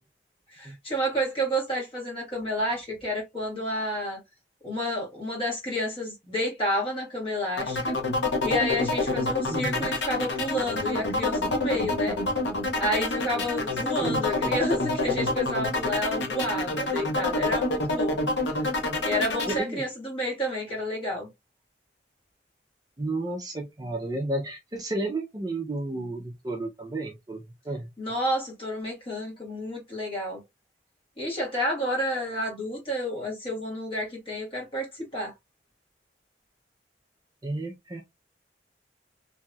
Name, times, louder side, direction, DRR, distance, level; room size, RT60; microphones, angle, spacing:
voice 1, 0.5-4.2 4.6-8.0 8.4-12.2 12.8-18.2 18.5-18.7 19.0-21.3 28.0-30.4 31.2-35.3, equal, 30° left, 1.5 m, -30 dB
sound 1, 7.6-19.6, left 2 dB, 85° left, 0.8 m, -27 dB
voice 2, 9.5-9.9 14.0-14.6 19.5-19.8 23.0-27.9 37.4-38.0, right 2 dB, 20° right, 0.5 m, -32 dB
2.9 x 2.7 x 2.3 m
head